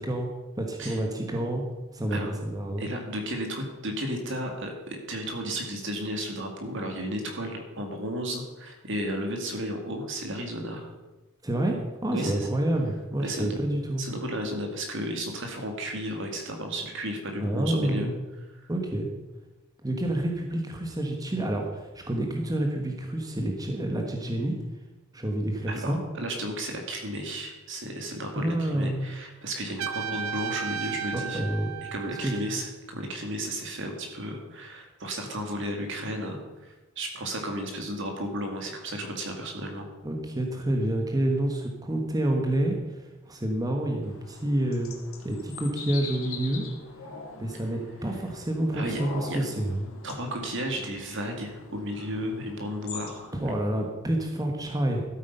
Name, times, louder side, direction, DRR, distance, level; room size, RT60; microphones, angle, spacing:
voice 1, 0.6-1.6 1.9-2.9 11.4-11.8 12.0-14.0 17.4-18.1 18.7-19.1 19.8-24.5 25.1-26.0 28.3-29.0 31.1-31.7 32.1-32.4 40.0-44.9 45.2-46.7 47.4-49.8 53.3-55.0, right 1 dB, 20° right, 2 dB, 1.3 m, -28 dB
voice 2, 2.8-10.9 12.1-12.5 13.2-13.6 14.0-18.1 18.6-18.7 25.7-31.4 31.8-39.9 48.7-49.0 49.3-49.4 50.0-53.3, equal, 60° right, 3 dB, 2.3 m, -33 dB
Trumpet, 29.8-32.6, right 8 dB, 90° right, 0.6 m, -34 dB
sound 1, 44.0-53.6, left 4 dB, 75° left, 2.1 m, -43 dB
13.0 x 8.4 x 5.5 m, 1.1 s
head